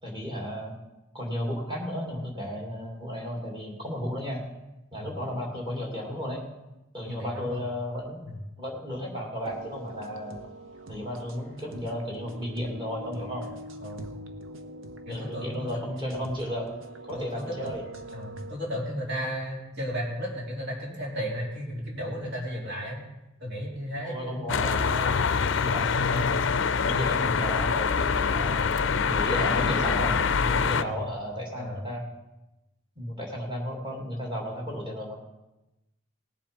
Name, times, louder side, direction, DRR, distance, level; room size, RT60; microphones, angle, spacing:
voice 1, 0.0-0.8 1.1-4.4 4.9-6.4 6.9-8.3 8.6-10.4 10.9-13.5 15.1-16.7 17.1-17.8 24.0-28.6 29.0-32.0 33.0-35.2, equal, 25° right, -2 dB, 2.7 m, -34 dB
voice 2, 7.1-7.7 8.2-8.4 13.8-14.2 15.1-15.7 17.1-17.8 18.1-23.0 23.4-24.4 30.7-30.9 31.6-31.8, equal, 60° right, -3 dB, 3.9 m, -34 dB
sound 1, 9.5-18.5, right 1 dB, 75° right, 1.1 m, -44 dB
sound 2, 24.5-30.8, left 5 dB, 65° left, 0.5 m, -25 dB
18.5 x 7.7 x 5.3 m, 0.97 s
head